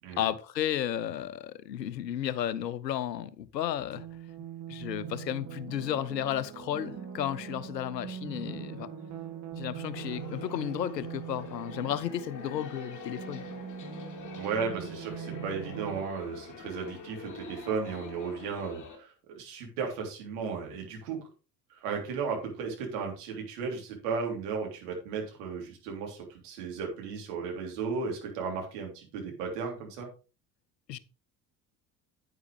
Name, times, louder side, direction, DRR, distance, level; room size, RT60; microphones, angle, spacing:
voice 1, 0.2-4.1 4.7-8.9 9.6-13.6 30.9-31.0, left 11 dB, 75° left, 0.8 m, -33 dB
sound 1, 3.9-16.0, right 7 dB, 35° right, 1.9 m, -42 dB
sound 2, 9.9-19.0, left 6 dB, 35° left, 2.8 m, -46 dB
voice 2, 14.3-21.2 21.7-30.1, right 5 dB, 65° right, 3.4 m, -35 dB
9.7 x 9.1 x 3.3 m
figure-of-eight pair, 60°, 50 cm